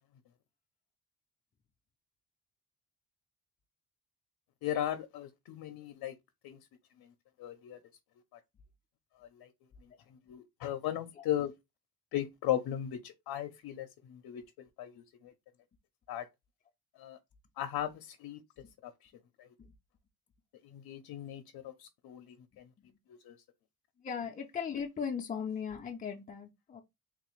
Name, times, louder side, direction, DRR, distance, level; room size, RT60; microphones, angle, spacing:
voice 1, 4.6-6.1 6.4-6.6 7.0-7.1 7.4-7.8 8.3-8.4 9.2-9.5 10.1-11.5 12.1-15.3 16.1-16.2 17.0-17.2 17.6-18.4 18.8-19.1 19.4-19.5 20.6-22.7 23.1-23.4, left 11 dB, 80° left, 0.5 m, -37 dB
voice 2, 24.0-26.8, left 7 dB, 25° left, 0.4 m, -37 dB
3.5 x 2.4 x 3.0 m
cardioid pair, 160°, 36 cm